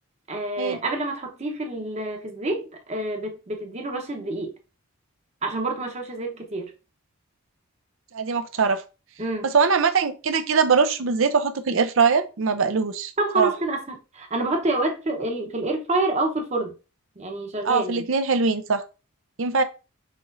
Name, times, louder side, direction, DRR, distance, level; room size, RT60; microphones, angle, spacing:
voice 1, 0.3-4.5 5.4-6.7 9.2-9.5 13.2-16.7 17.2-18.0, right 2 dB, 30° right, 0.9 m, -27 dB
voice 2, 8.1-8.8 9.4-13.5 17.6-18.8 19.4-19.6, right 5 dB, 65° right, 0.5 m, -22 dB
6.3 x 3.0 x 2.5 m
head